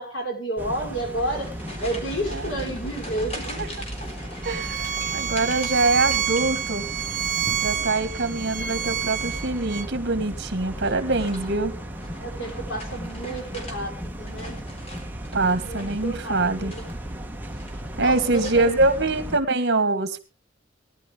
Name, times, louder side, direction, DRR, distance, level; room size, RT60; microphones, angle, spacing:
voice 1, 0.0-1.5 1.8-3.6 12.2-14.6 15.6-16.9 18.0-18.7, right 1 dB, 70° left, 2 dB, 5.4 m, -31 dB
sound 1, 0.6-19.4, equal, 10° right, 1.4 m, -36 dB
sound 2, 1.1-7.0 7.3-7.9 9.3-9.7 10.7-13.8 14.1-16.2 16.6-17.2 17.5-18.0 18.4-18.9, left 1 dB, 35° left, 3.8 m, -42 dB
Bowed string instrument, 4.4-9.9, right 9 dB, 45° right, 1.1 m, -28 dB
voice 2, 4.5-6.9 7.6-11.8 15.3-16.7 18.0-20.2, right 3 dB, 60° right, 11 dB, 1.8 m, -24 dB
19.0 x 11.5 x 3.7 m, 0.33 s
head